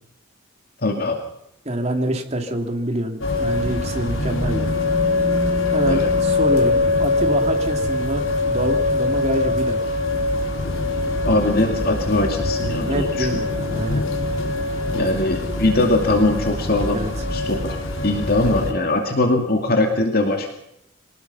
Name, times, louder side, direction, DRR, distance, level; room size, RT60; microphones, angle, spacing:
voice 1, 0.8-1.2 5.8-6.1 11.2-13.4 14.9-20.5, left 2 dB, 50° left, 3 dB, 2.5 m, -21 dB
voice 2, 1.6-4.7 5.7-9.9 12.7-14.0 14.6-14.8 16.9-17.1, right 1 dB, 30° right, 4 dB, 2.9 m, -26 dB
sound 1, 3.2-18.7, left 2 dB, 75° left, 4.4 m, -23 dB
24.5 x 19.0 x 5.7 m, 0.78 s
head